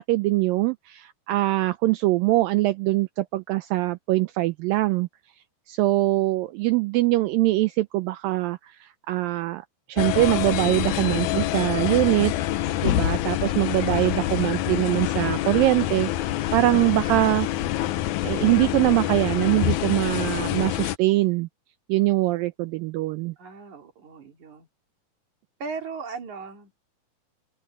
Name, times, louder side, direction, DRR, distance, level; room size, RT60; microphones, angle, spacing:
voice 1, 0.0-5.1 5.7-12.3 12.8-17.5 18.2-21.5 21.9-23.3, right 18 dB, 80° right, 2.1 m, -23 dB
sound 1, 10.0-21.0, left 13 dB, 85° left, 1.7 m, -26 dB
voice 2, 23.4-24.7 25.6-26.9, right 5 dB, 55° right, 3.6 m, -37 dB
open air
omnidirectional pair, 4.5 m